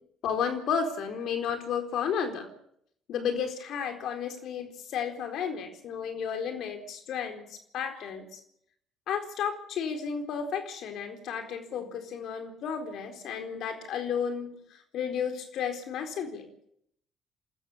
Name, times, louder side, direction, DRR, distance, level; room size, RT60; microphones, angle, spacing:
voice 1, 0.2-2.5 3.1-8.4 9.1-16.5, left 7 dB, 60° left, 5 dB, 4.2 m, -33 dB
27.0 x 14.0 x 7.3 m, 0.70 s
hypercardioid pair, 50°, 0 cm